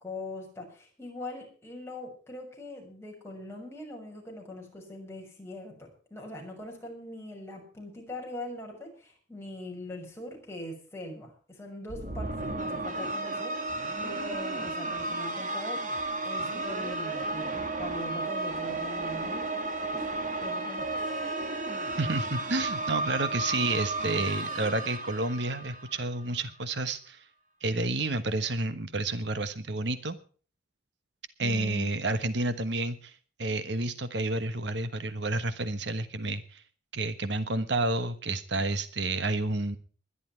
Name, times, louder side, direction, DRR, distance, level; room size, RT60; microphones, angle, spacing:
voice 1, 0.0-15.8 16.2-19.5 19.9-20.1 20.4-21.2 28.2-28.3 31.4-31.9, left 1 dB, 15° left, -1 dB, 6.4 m, -42 dB
sound 1, 11.9-26.3, right 2 dB, 40° right, 2.1 m, -33 dB
voice 2, 22.0-27.2 27.6-30.2 31.4-36.6 36.9-39.8, right 2 dB, 65° right, 11 dB, 1.3 m, -30 dB
21.0 x 11.5 x 4.6 m, 0.41 s
head